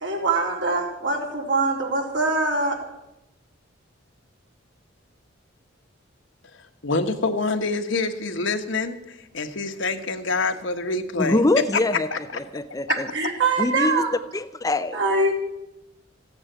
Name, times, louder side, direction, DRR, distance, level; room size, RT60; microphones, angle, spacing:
voice 1, 0.0-2.8 13.1-14.1 14.9-15.3, right 3 dB, 65° right, 0 dB, 3.7 m, -23 dB
voice 2, 6.8-11.4 11.7-11.8 12.1-12.2, left 3 dB, 70° left, 6 dB, 1.4 m, -26 dB
voice 3, 11.2-12.1 12.3-13.1 13.6-14.0 14.3-15.0, left 2 dB, 20° left, 10 dB, 0.5 m, -24 dB
15.5 x 9.7 x 9.1 m, 0.92 s
head